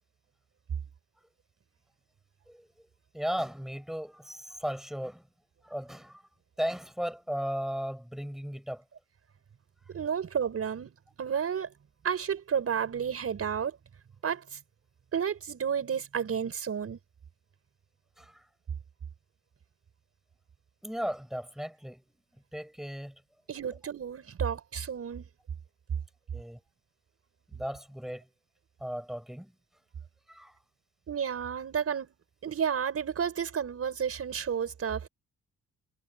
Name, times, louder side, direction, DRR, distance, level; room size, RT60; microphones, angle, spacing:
voice 1, 3.1-5.2 5.6-6.2 6.6-8.8 18.2-18.3 20.8-22.0 22.5-23.1 26.3-26.6 27.5-28.2 28.8-29.5 30.3-30.5, equal, ahead, 6.6 m, -36 dB
voice 2, 9.9-10.9 11.2-11.7 12.0-13.8 14.2-14.6 15.1-17.0 23.5-25.3 31.1-32.1 32.4-35.1, right 7 dB, 50° right, 5.7 m, -31 dB
cardioid pair, 90°, 30 cm